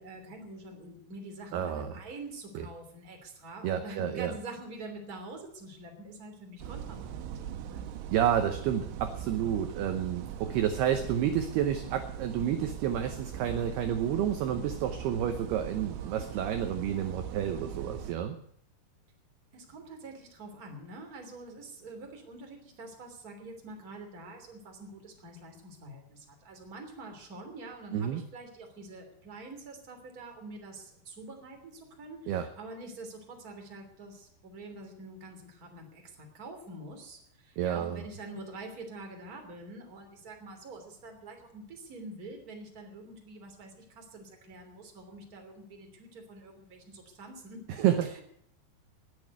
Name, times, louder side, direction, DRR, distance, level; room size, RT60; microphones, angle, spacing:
voice 1, 0.0-7.8 19.5-47.6 48.0-48.2, right 2 dB, 25° right, 3 dB, 2.7 m, -46 dB
voice 2, 1.5-2.0 3.6-4.3 8.1-18.4 27.9-28.2 32.3-32.4 37.6-38.0 47.8-48.1, right 9 dB, 75° right, 7 dB, 2.6 m, -30 dB
sound 1, 6.6-18.2, right 9 dB, 90° right, 3.4 m, -40 dB
19.5 x 7.1 x 9.4 m, 0.69 s
omnidirectional pair, 5.4 m